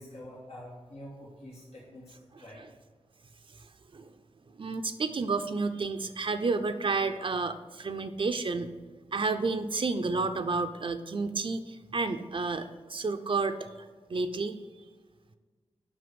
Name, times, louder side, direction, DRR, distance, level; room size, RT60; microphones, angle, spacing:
voice 1, 0.0-2.6, left 1 dB, 85° left, -4 dB, 1.4 m, -47 dB
voice 2, 2.3-2.7 3.9-4.1 4.5-8.7 9.1-13.7 14.1-14.6, right 3 dB, 55° right, 8 dB, 0.6 m, -31 dB
7.9 x 5.6 x 5.2 m, 1.4 s
cardioid pair, 50°, 11 cm